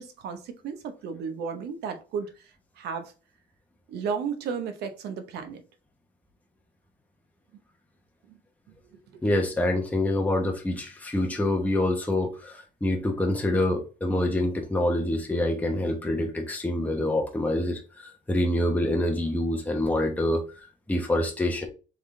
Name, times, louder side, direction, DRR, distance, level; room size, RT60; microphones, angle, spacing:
voice 1, 0.0-2.3 2.8-3.1 3.9-5.6 9.1-9.2 15.8-15.9, right 6 dB, 75° right, 0.9 m, -33 dB
voice 2, 9.2-20.4 20.9-21.7, left 1 dB, 10° left, 0.9 m, -26 dB
3.6 x 3.5 x 3.2 m
cardioid pair, 110°, 17 cm